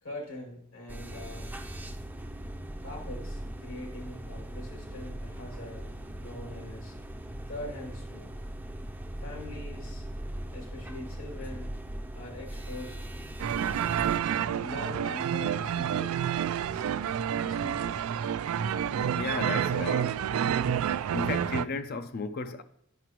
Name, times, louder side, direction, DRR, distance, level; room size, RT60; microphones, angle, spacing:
voice 1, 0.0-1.5 2.8-7.0 7.5-8.3 9.2-10.0 10.5-11.7 12.1-13.1 14.1-16.1 16.6-16.8 17.4-18.2, left 1 dB, 75° left, 2.4 m, -43 dB
sound 1, 0.9-14.2, right 1 dB, 10° right, 0.5 m, -40 dB
sound 2, 13.4-21.6, right 9 dB, 85° right, 0.3 m, -29 dB
voice 2, 19.2-20.2 21.1-22.6, left 3 dB, 45° left, 0.4 m, -34 dB
9.3 x 5.9 x 3.0 m
head